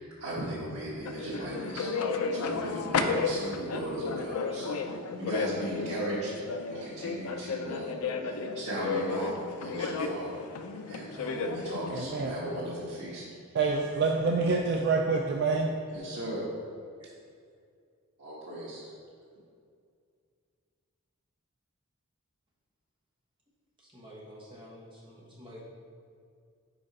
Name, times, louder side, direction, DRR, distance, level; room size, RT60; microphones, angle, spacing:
voice 1, 0.0-1.9 2.3-4.8 5.2-7.9 8.2-10.3 10.9-13.2 15.9-16.4 18.2-18.9, right 1 dB, 85° right, -11 dB, 1.4 m, -37 dB
sound 1, 1.1-12.0, left 4 dB, 85° left, 0.4 m, -33 dB
voice 2, 11.9-12.3 13.5-15.7, right 4 dB, 50° right, 1 dB, 0.4 m, -27 dB
voice 3, 23.8-25.6, equal, 25° right, -6 dB, 1.3 m, -49 dB
5.0 x 4.9 x 4.7 m, 2.3 s
head